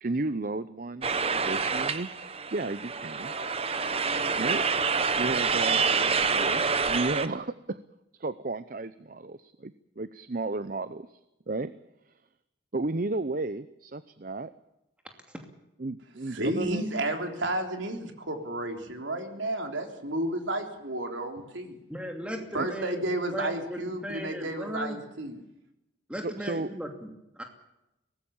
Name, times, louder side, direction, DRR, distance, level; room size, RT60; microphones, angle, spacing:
voice 1, 0.0-1.1 1.4-2.1 2.5-3.3 4.4-4.6 5.2-7.8 8.2-11.2 11.5-11.7 12.7-14.5 15.8-16.9 22.6-22.7 26.2-26.7, right 2 dB, 45° right, 14 dB, 0.7 m, -33 dB
sound 1, 1.0-7.3, right 5 dB, 30° right, 1.1 m, -27 dB
voice 2, 16.3-21.8 22.5-25.4, right 1 dB, 80° right, 5 dB, 3.6 m, -32 dB
voice 3, 21.9-23.0 23.3-25.0 26.1-27.4, right 1 dB, 5° right, 4 dB, 2.7 m, -37 dB
23.0 x 19.0 x 7.2 m, 0.90 s
head